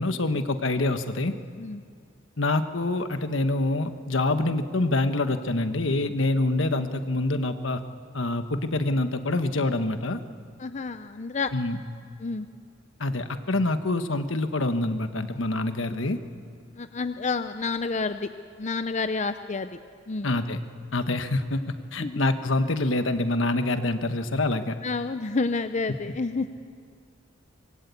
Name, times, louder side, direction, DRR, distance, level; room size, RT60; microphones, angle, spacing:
voice 1, 0.0-1.3 2.4-7.8 8.1-10.2 11.5-11.8 13.0-16.2 20.2-20.6 20.9-24.8, left 2 dB, 70° left, 8 dB, 1.3 m, -26 dB
voice 2, 10.6-11.5 12.2-12.5 16.8-18.3 18.6-19.8 20.1-20.3 22.0-22.3 24.8-26.5, left 4 dB, 35° left, 9 dB, 0.6 m, -29 dB
25.0 x 22.0 x 8.4 m, 2.2 s
head